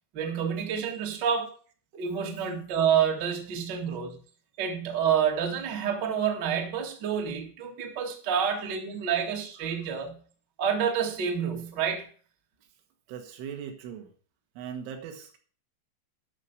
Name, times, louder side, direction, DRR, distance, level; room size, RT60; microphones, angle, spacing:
voice 1, 0.1-1.5 1.9-4.2 4.6-10.2 10.6-12.1, right 7 dB, 50° right, 1.2 m, -28 dB
voice 2, 13.1-14.1 14.6-15.4, right 8 dB, 80° right, 4.1 m, -39 dB
12.0 x 6.3 x 6.8 m
omnidirectional pair, 5.6 m